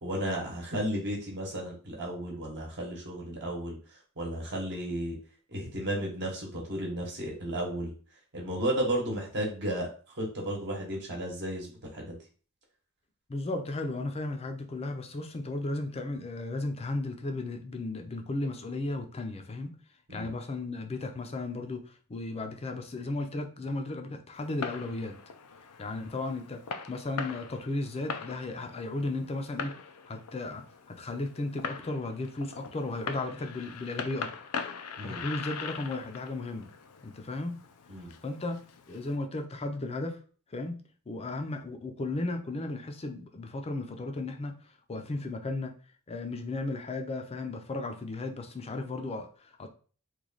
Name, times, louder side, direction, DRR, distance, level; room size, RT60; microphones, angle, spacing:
voice 1, 0.0-3.8 4.2-5.2 5.5-7.9 8.3-9.9 10.1-12.2 20.1-20.3 35.0-35.2 37.9-38.1, right 1 dB, 50° right, -2 dB, 1.0 m, -33 dB
voice 2, 13.3-19.7 20.1-25.2 25.8-26.6 26.9-29.7 30.1-34.3 35.0-36.7 37.0-37.5 38.2-38.6 38.9-40.2 40.5-40.8 41.1-45.7 46.1-49.7, left 2 dB, 25° left, 5 dB, 0.5 m, -35 dB
Fireworks, 24.3-39.2, left 6 dB, 85° left, 0.4 m, -42 dB
3.1 x 2.3 x 3.8 m, 0.40 s
head